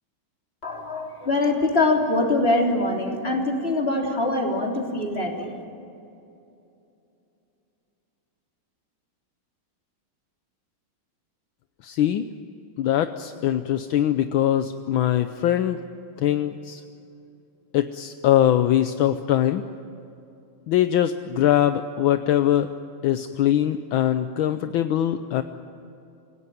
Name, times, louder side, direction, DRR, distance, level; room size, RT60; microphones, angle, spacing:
voice 1, 0.6-5.5, left 2 dB, 25° left, 0 dB, 3.5 m, -23 dB
voice 2, 11.8-12.2 12.8-15.8 16.2-16.8 17.7-19.6 20.7-22.7 23.0-25.4, left 11 dB, 75° left, 9 dB, 1.5 m, -22 dB
27.5 x 17.0 x 9.3 m, 2.8 s
omnidirectional pair, 2.3 m